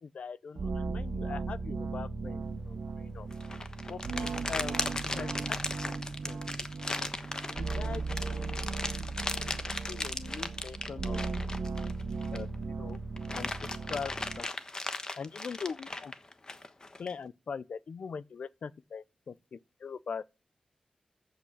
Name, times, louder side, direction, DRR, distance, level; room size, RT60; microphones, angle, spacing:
voice 1, 0.0-3.3 3.9-4.8 5.1-5.6 5.8-5.9 6.2-6.4 7.6-8.7 9.4-9.6 9.9-11.2 12.3-12.5 12.8-13.0 13.3-13.5 13.9-14.5 15.2-16.1 17.0-20.4, left 5 dB, 75° left, 0.7 m, -41 dB
sound 1, 0.6-14.4, right 4 dB, 85° right, 1.5 m, -37 dB
sound 2, 3.3-12.6 12.9-17.1, left 2 dB, 35° left, 1.2 m, -37 dB
14.5 x 8.1 x 6.5 m
wide cardioid pair, 135°, 2 cm